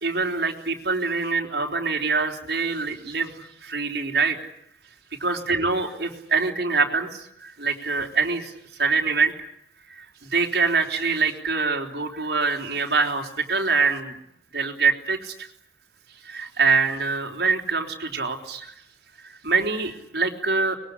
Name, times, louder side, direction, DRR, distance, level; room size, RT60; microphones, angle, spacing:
voice 1, 0.0-4.4 5.2-8.5 8.8-9.3 9.9-14.2 14.5-15.5 16.2-18.7 19.2-20.8, right 4 dB, 70° right, 2 dB, 4.0 m, -24 dB
25.0 x 21.5 x 10.0 m, 0.74 s
head